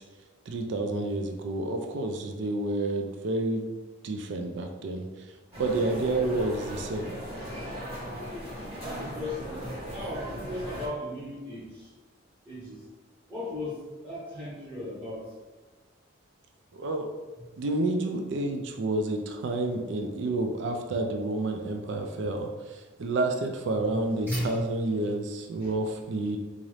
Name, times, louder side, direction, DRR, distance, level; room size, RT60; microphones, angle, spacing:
voice 1, 0.5-3.7 4.0-5.1 5.6-7.2 16.7-17.1 17.6-26.4, right 2 dB, 65° right, 4 dB, 0.3 m, -29 dB
sound 1, 5.5-10.9, equal, 30° right, 1.3 m, -38 dB
voice 2, 8.8-11.9 12.4-12.8 13.3-15.3 23.8-24.0 24.3-24.6 25.6-25.7, left 1 dB, 10° right, -9 dB, 0.8 m, -36 dB
4.0 x 2.5 x 3.1 m, 1.3 s
head